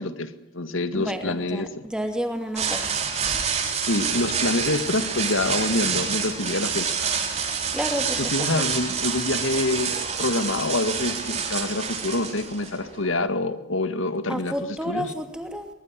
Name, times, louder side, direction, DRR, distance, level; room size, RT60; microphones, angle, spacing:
voice 1, 0.0-1.7 3.9-7.0 8.2-14.5 14.9-15.1, left 2 dB, 85° left, 10 dB, 2.1 m, -26 dB
voice 2, 0.9-3.1 3.3-3.4 7.7-8.3 8.6-8.7 14.3-15.7, equal, 5° right, 6 dB, 2.6 m, -30 dB
sound 1, 2.6-13.2, right 6 dB, 35° right, 3.8 m, -27 dB
23.0 x 20.5 x 10.0 m, 0.88 s
head